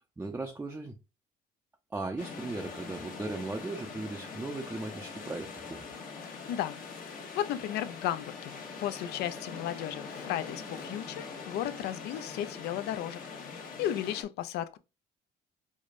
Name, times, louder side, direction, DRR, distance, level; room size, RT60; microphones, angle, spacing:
voice 1, 0.2-0.9 1.9-5.8, right 2 dB, 10° right, 0.4 m, -37 dB
sound 1, 2.2-14.2, left 5 dB, 55° left, 1.0 m, -43 dB
voice 2, 6.5-6.8 7.3-14.8, left 11 dB, 75° left, 0.4 m, -35 dB
4.8 x 2.1 x 2.5 m
cardioid pair, 110°, 17 cm